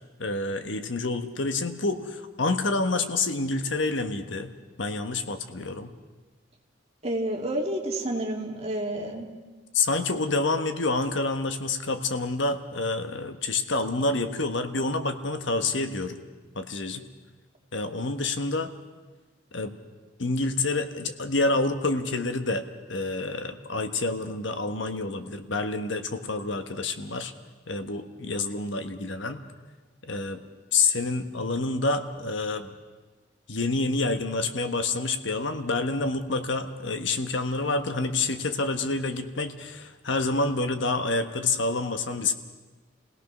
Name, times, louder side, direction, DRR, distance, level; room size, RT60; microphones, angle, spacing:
voice 1, 0.2-4.5 4.8-5.9 9.7-16.2 16.5-17.0 17.7-18.7 19.5-19.7 20.2-27.3 27.7-29.4 30.0-30.4 30.7-32.7 33.5-42.3, left 3 dB, 70° left, 8 dB, 1.4 m, -28 dB
voice 2, 7.0-9.3, right 1 dB, 30° right, 0 dB, 2.6 m, -29 dB
29.0 x 17.5 x 6.2 m, 1.3 s
head